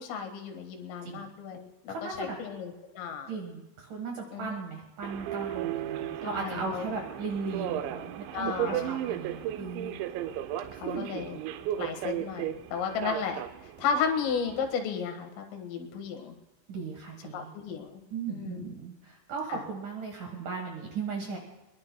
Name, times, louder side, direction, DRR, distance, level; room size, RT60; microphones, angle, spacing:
voice 1, 0.0-3.4 4.3-4.6 6.2-6.9 8.3-8.9 10.7-11.4 11.8-16.4 17.3-18.0 18.3-18.6 19.5-19.6, left 6 dB, 75° left, 4 dB, 4.2 m, -34 dB
voice 2, 1.9-2.4 3.3-9.9 10.8-11.1 16.7-17.5 18.1-21.4, right 4 dB, 70° right, 1 dB, 2.0 m, -37 dB
Subway metro underground, 5.0-14.7, right 12 dB, 85° right, 2.6 m, -35 dB
22.5 x 21.5 x 2.2 m, 1.1 s
omnidirectional pair, 5.9 m